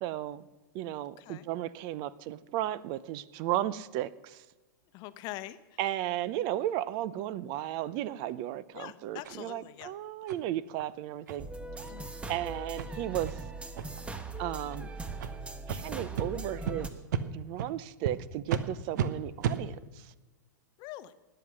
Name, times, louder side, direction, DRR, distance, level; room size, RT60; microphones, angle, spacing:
voice 1, 0.0-0.5 0.7-4.4 5.8-11.5 12.3-13.4 14.4-14.9 15.7-16.9 17.3-20.1, right 13 dB, 45° right, 18 dB, 0.6 m, -34 dB
voice 2, 4.9-5.8 8.7-9.9 11.9-12.1 20.8-21.1, left 15 dB, 40° left, 13 dB, 0.9 m, -44 dB
sound 1, 9.2-9.4 9.8-9.9 10.3-10.4 10.8-10.9 11.3-11.4 11.8-11.9 12.2-12.4 12.8-12.9 13.3-13.4 13.7-14.1 14.7-14.8 15.2-15.3 15.7-15.8 16.2-16.3 16.7-16.8 17.1-17.2 17.6-17.7 18.0-18.1 18.5-18.6 19.0-19.1 19.4-19.6, right 8 dB, 65° right, 1.1 m, -32 dB
sound 2, 11.4-16.9, right 2 dB, 10° right, 1.2 m, -40 dB
19.0 x 7.9 x 6.2 m, 1.2 s
hypercardioid pair, 115°, 10 cm